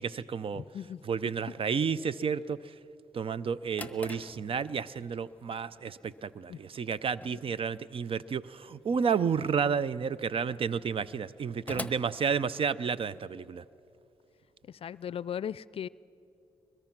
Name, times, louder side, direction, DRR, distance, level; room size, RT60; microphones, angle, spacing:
voice 1, 0.0-0.6 1.0-2.7 3.1-13.6, right 6 dB, 55° right, 17 dB, 0.6 m, -31 dB
voice 2, 0.5-1.0 6.5-6.6 14.7-15.9, left 9 dB, 60° left, 20 dB, 0.4 m, -37 dB
Drawer open or close, 3.4-13.1, left 2 dB, 15° left, 1.2 m, -48 dB
22.5 x 21.0 x 6.0 m, 2.7 s
supercardioid pair, 50°, 11 cm